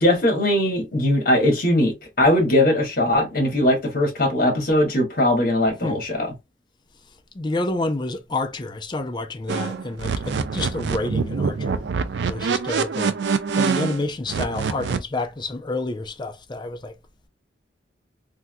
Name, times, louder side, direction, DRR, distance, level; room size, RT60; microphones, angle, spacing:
voice 1, 0.0-6.3, left 1 dB, 50° left, 1.4 m, -20 dB
voice 2, 7.3-11.8 12.2-13.1 13.5-16.9, left 2 dB, 25° left, 0.5 m, -29 dB
sound 1, 9.5-15.0, right 5 dB, 70° right, 0.4 m, -25 dB
3.4 x 2.7 x 2.2 m
head